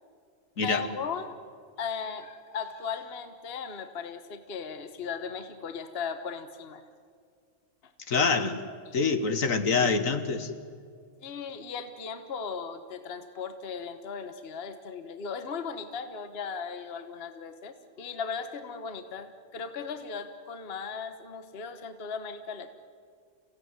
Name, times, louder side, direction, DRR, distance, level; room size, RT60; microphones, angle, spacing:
voice 1, 0.6-1.3 1.8-6.8 7.8-7.9 8.8-9.0 11.2-22.7, left 5 dB, 45° left, 9 dB, 1.4 m, -37 dB
voice 2, 8.1-8.6 8.9-10.5, left 4 dB, 60° left, 9 dB, 1.7 m, -25 dB
28.5 x 16.5 x 9.6 m, 2.2 s
omnidirectional pair, 1.6 m